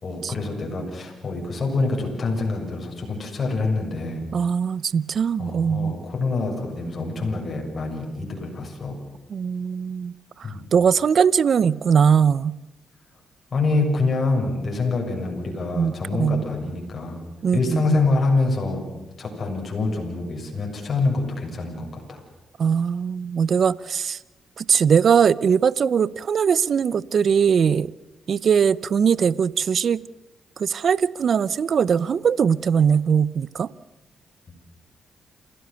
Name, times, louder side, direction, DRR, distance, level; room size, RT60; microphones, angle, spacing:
voice 1, 0.0-4.2 5.4-9.0 10.4-10.7 13.5-17.2 17.5-18.9 19.2-22.2, left 3 dB, 45° left, 0 dB, 6.9 m, -26 dB
voice 2, 4.3-5.9 9.3-10.1 10.7-12.6 15.7-15.9 16.2-16.4 17.4-18.0 22.6-24.2 24.6-27.9 28.3-30.0 30.6-33.7, right 7 dB, 60° right, 20 dB, 0.6 m, -20 dB
29.0 x 16.0 x 6.9 m, 1.1 s
cardioid pair, 70°, 0 cm